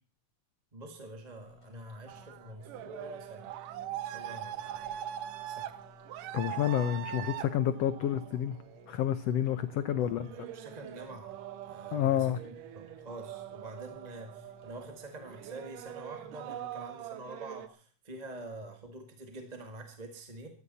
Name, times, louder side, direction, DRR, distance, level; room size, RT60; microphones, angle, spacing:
voice 1, 0.7-3.5 4.0-4.9 5.5-5.7 9.9-20.5, right 2 dB, 20° right, 4 dB, 1.3 m, -46 dB
sound 1, 1.4-16.9, left 4 dB, 40° left, 4.6 m, -58 dB
sound 2, 2.1-17.7, right 12 dB, 80° right, 2.4 m, -43 dB
voice 2, 6.3-8.6 8.9-10.3 11.9-12.4, left 10 dB, 75° left, 13 dB, 1.5 m, -29 dB
17.0 x 15.0 x 4.2 m, 0.40 s
omnidirectional pair, 3.8 m